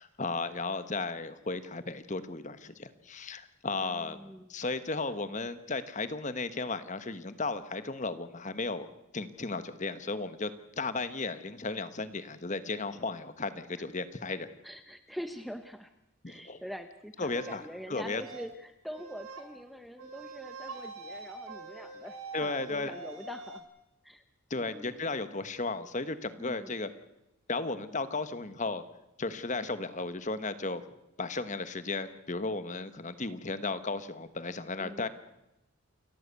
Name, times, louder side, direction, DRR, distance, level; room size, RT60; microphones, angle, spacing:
voice 1, 0.0-4.2 4.5-8.9 9.1-10.5 10.8-14.5 16.2-16.6 17.2-17.6 17.9-18.2 22.3-23.0 24.5-26.9 27.5-28.8 29.2-30.8 31.2-35.1, left 3 dB, 35° left, 12 dB, 1.2 m, -35 dB
voice 2, 3.7-4.5 14.6-15.9 16.3-23.7 24.0-24.2 24.5-25.0 26.4-26.7 34.8-35.1, equal, ahead, 9 dB, 0.8 m, -44 dB
sound 1, 17.2-17.6 18.0-18.6 18.9-19.4 20.0-23.6, right 3 dB, 85° right, 3.8 m, -44 dB
29.0 x 14.0 x 8.2 m, 0.90 s
head